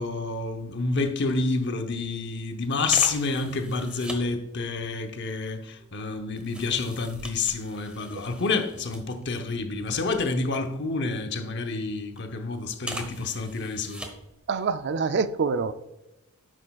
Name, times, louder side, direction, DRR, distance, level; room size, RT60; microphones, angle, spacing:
voice 1, 0.0-14.0, left 3 dB, 55° left, 0.8 m, -28 dB
sound 1, 1.3-1.4 1.8-1.9 2.9-4.2 5.0-9.5 9.9-11.2 11.8-12.2 12.8-14.4 14.7-14.9, right 1 dB, 5° right, 1.0 m, -41 dB
voice 2, 14.5-15.7, right 5 dB, 50° right, 0.4 m, -25 dB
9.9 x 6.3 x 2.3 m
head